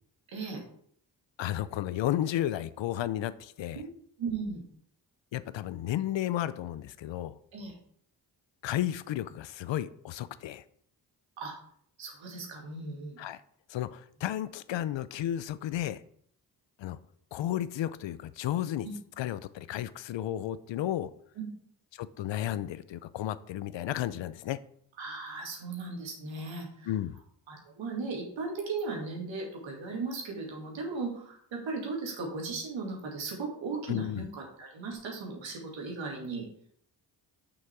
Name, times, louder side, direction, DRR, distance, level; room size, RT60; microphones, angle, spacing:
voice 1, 1.4-3.8 5.3-7.3 8.6-10.6 13.2-13.4 13.7-16.0 16.8-17.0 17.3-18.9 19.2-21.1 21.9-24.6 26.8-27.2 33.9-34.3, left 12 dB, 75° left, 15 dB, 0.6 m, -33 dB
voice 2, 4.2-4.6 7.5-7.7 11.4-11.5 12.0-13.2 18.8-18.9 21.4-21.5 25.0-26.9 27.5-36.5, right 4 dB, 85° right, 0 dB, 2.3 m, -37 dB
6.5 x 5.7 x 4.6 m, 0.64 s
cardioid pair, 50°, 45 cm